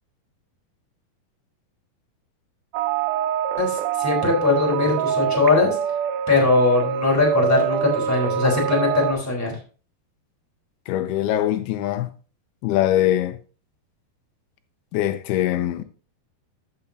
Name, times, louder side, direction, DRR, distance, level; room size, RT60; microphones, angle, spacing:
sound 1, 2.7-9.1, right 9 dB, 80° right, 2.5 m, -25 dB
voice 1, 3.6-5.7 6.3-9.5, left 3 dB, 5° left, 3.3 m, -20 dB
voice 2, 10.9-12.1 12.6-13.4 14.9-15.8, left 13 dB, 85° left, 2.7 m, -22 dB
14.0 x 7.0 x 2.7 m
omnidirectional pair, 4.5 m